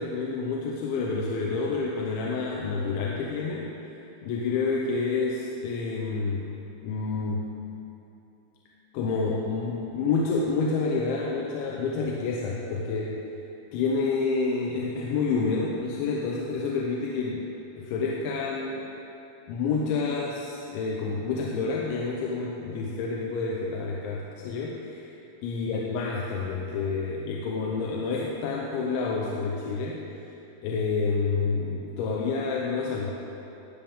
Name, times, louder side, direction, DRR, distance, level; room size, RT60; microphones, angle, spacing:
voice 1, 0.0-3.7 4.2-6.5 6.8-7.5 8.9-13.2 13.7-17.5 17.8-18.9 19.5-25.1 25.4-30.0 30.6-33.1, left 4 dB, 80° left, -2 dB, 3.1 m, -28 dB
18.0 x 7.2 x 3.5 m, 2.9 s
omnidirectional pair, 5.4 m